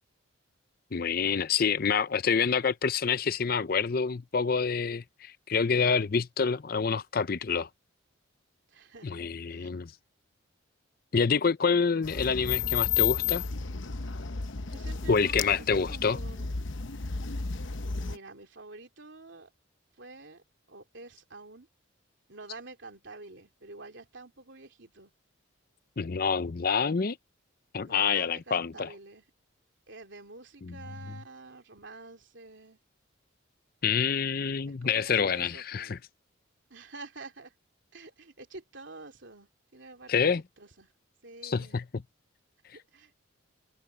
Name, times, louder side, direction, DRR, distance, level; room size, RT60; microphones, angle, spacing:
voice 1, 0.9-7.7 9.0-9.9 11.1-13.4 15.1-16.2 26.0-27.2 27.7-28.9 30.6-30.7 33.8-36.0 40.1-40.4 41.4-41.8, left 5 dB, 45° left, 0.5 m, -27 dB
voice 2, 8.7-9.8 14.6-16.6 18.0-19.5 20.0-21.7 22.3-25.1 27.9-29.2 29.9-32.8 34.7-36.0 36.7-37.5 37.9-40.3 40.6-40.9 41.2-41.8 42.7-43.1, right 3 dB, 60° right, 3.1 m, -48 dB
sound 1, 12.0-18.2, left 7 dB, 65° left, 0.9 m, -32 dB
head